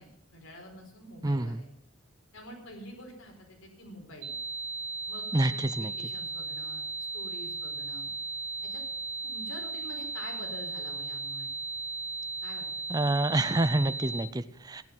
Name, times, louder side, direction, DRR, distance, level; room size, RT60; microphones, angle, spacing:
voice 1, 0.0-1.7 2.3-4.3 5.1-6.8 7.1-8.1 8.7-8.8 9.2-11.5 12.4-13.1, equal, 75° left, 2 dB, 4.5 m, -47 dB
voice 2, 1.2-1.6 5.3-5.9 12.9-14.8, right 2 dB, 20° right, 11 dB, 0.5 m, -27 dB
sound 1, 4.2-14.2, right 3 dB, 60° right, 1.4 m, -36 dB
15.5 x 11.0 x 6.0 m, 0.71 s
head